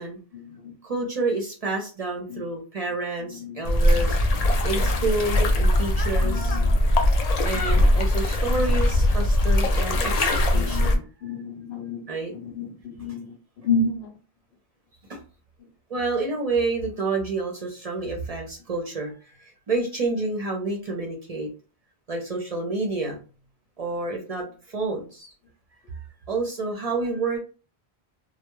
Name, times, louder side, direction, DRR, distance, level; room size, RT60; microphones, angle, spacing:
voice 1, 0.3-0.8 2.3-2.5 3.2-3.7 4.4-5.1 6.2-6.7 7.5-7.6 7.9-8.0 8.5-8.6 9.9-10.1 10.5-14.2, left 3 dB, 80° left, 0.9 m, -32 dB
voice 2, 0.8-4.2 4.6-6.6 7.4-11.0 12.1-12.3 15.1-15.2 15.9-21.5 22.1-23.2 23.8-25.3 25.9-26.0 26.3-27.4, right 3 dB, 45° right, 0.6 m, -29 dB
sound 1, 3.7-11.0, left 1 dB, 55° left, 0.4 m, -21 dB
2.2 x 2.1 x 2.9 m
omnidirectional pair, 1.0 m